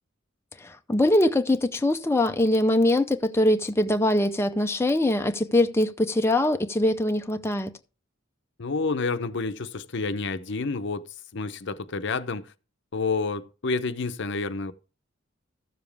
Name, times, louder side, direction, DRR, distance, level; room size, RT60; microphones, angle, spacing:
voice 1, 0.6-7.7, left 1 dB, 15° left, 0.6 m, -23 dB
voice 2, 8.6-11.1 11.3-12.5 12.9-14.7, left 4 dB, 65° left, 0.7 m, -29 dB
14.0 x 7.2 x 3.4 m
head